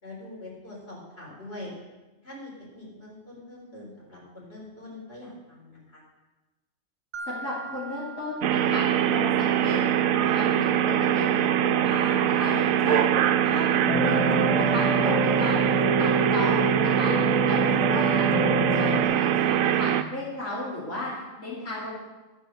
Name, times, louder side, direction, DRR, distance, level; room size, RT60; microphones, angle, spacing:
voice 1, 0.0-1.7 2.2-6.0 17.7-17.8, left 1 dB, 50° left, -4 dB, 4.4 m, -43 dB
Mallet percussion, 7.1-9.7, right 3 dB, 50° right, 0.5 m, -41 dB
voice 2, 7.2-9.8 10.2-17.1 17.4-18.2 18.7-21.1 21.4-21.9, left 1 dB, 75° left, -8 dB, 3.3 m, -33 dB
sound 1, 8.4-20.0, right 10 dB, 85° right, 1.0 m, -23 dB
sound 2, 13.9-19.0, equal, 25° left, 1.2 m, -27 dB
13.5 x 7.3 x 6.4 m, 1.1 s
omnidirectional pair, 1.4 m